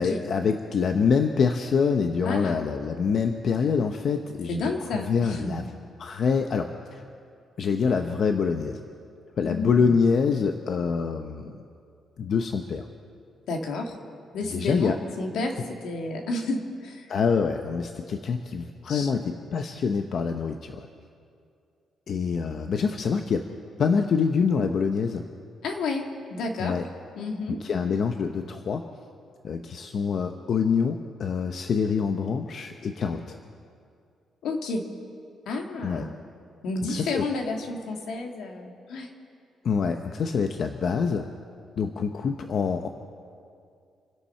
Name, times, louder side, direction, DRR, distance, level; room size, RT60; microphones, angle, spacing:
voice 1, 0.0-4.6 4.9-5.6 6.0-7.0 7.6-8.8 9.4-11.6 12.2-12.9 14.5-15.0 17.1-20.9 22.1-23.4 23.8-25.2 26.6-26.9 27.6-28.8 29.4-33.4 35.8-36.0 36.9-37.3 39.6-41.3 41.8-42.9, left 5 dB, 45° left, 6 dB, 0.7 m, -25 dB
voice 2, 2.2-2.7 4.5-5.6 9.4-9.9 13.5-14.0 14.3-17.1 18.9-19.1 25.6-26.0 26.3-26.8 27.2-27.6 34.4-34.9 35.5-36.2 36.6-39.1, left 3 dB, 70° left, 2 dB, 2.0 m, -31 dB
28.0 x 11.0 x 4.4 m, 2.4 s
cardioid pair, 165°, 0 cm